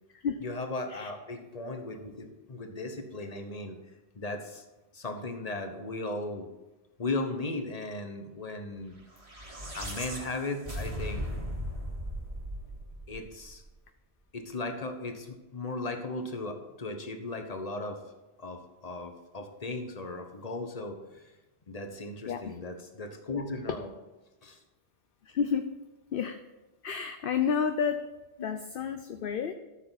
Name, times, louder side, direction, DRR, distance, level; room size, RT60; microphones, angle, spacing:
voice 1, 0.4-3.8 4.1-4.6 4.9-6.5 7.0-9.0 9.7-11.3 13.1-13.6 14.3-18.0 18.4-21.2 21.7-23.9 24.4-24.6 28.4-28.5, left 2 dB, 35° left, 5 dB, 1.3 m, -37 dB
sound 1, 9.1-13.5, equal, 30° right, 1.9 m, -37 dB
voice 2, 25.3-25.7 26.1-26.4 26.8-28.0 28.4-29.5, left 6 dB, 60° left, 8 dB, 0.8 m, -30 dB
13.5 x 7.0 x 4.1 m, 1.1 s
omnidirectional pair, 1.1 m